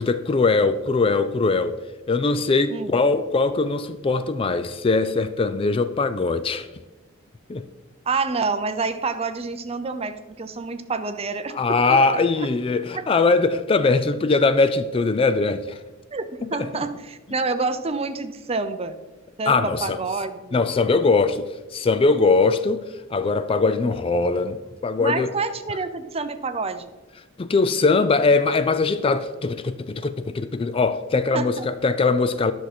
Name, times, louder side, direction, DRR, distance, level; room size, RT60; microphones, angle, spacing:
voice 1, 0.0-1.7 2.1-6.7 7.5-7.6 11.5-15.8 16.6-16.7 19.5-19.8 20.5-22.9 23.1-25.3 27.4-32.5, left 3 dB, 25° left, 0.3 m, -21 dB
voice 2, 8.1-12.5 16.1-19.0 19.4-20.7 25.0-26.9 31.3-31.7, right 4 dB, 30° right, 0.6 m, -28 dB
10.5 x 6.2 x 4.3 m
head